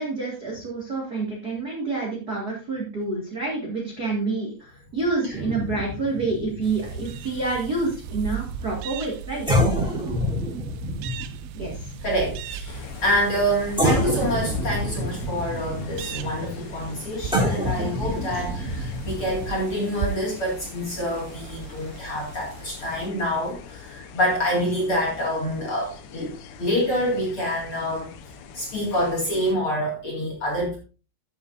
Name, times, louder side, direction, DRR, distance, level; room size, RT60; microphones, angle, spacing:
voice 1, 0.0-9.5 9.8-10.0 11.5-11.9, right 3 dB, 60° right, -3 dB, 0.9 m, -28 dB
sound 1, 5.3-8.6 9.0-9.1 9.5-13.4 13.8-19.5, equal, ahead, 2.0 m, -28 dB
sound 2, 6.6-23.1, right 9 dB, 90° right, 2.4 m, -38 dB
voice 2, 12.0-30.8, equal, 40° left, -3 dB, 2.2 m, -27 dB
sound 3, 12.7-29.5, left 7 dB, 80° left, 3.3 m, -43 dB
14.0 x 7.1 x 2.6 m, 0.35 s
omnidirectional pair, 5.4 m